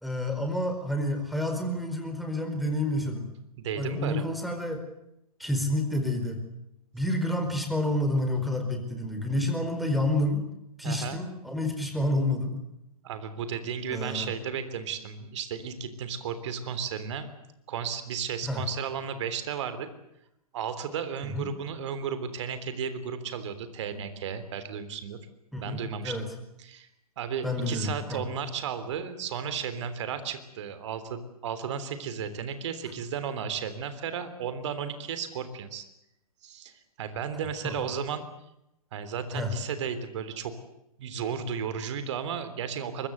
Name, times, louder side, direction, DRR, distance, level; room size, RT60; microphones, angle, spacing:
voice 1, 0.0-3.3 3.8-4.8 5.4-6.4 6.9-10.4 10.8-12.6 13.9-14.3 18.4-18.6 21.3-21.5 25.5-26.3 27.4-28.2 37.6-37.7 39.3-39.5, left 1 dB, ahead, 4 dB, 4.7 m, -29 dB
voice 2, 3.6-4.2 10.8-11.2 13.0-17.3 17.7-19.9 20.5-25.2 25.6-26.3 26.6-26.9 27.2-35.8 36.4-36.7 37.0-38.2 38.9-40.5 41.0-43.1, right 7 dB, 50° right, 11 dB, 3.5 m, -34 dB
24.0 x 22.0 x 8.1 m, 0.84 s
figure-of-eight pair, 120°, 19 cm